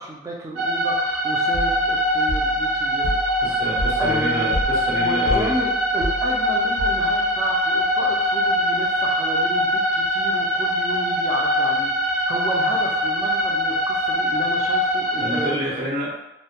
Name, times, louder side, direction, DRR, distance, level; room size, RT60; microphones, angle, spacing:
voice 1, 0.0-3.6 4.0-4.6 5.0-15.7, right 1 dB, 20° right, -2 dB, 0.3 m, -32 dB
sound 1, 0.6-15.5, equal, 85° right, 0.4 m, -22 dB
sound 2, 1.5-7.3, left 1 dB, 80° left, 0.4 m, -31 dB
voice 2, 3.4-5.5 15.2-16.1, equal, 70° right, -6 dB, 0.9 m, -28 dB
2.2 x 2.0 x 2.8 m, 0.89 s
head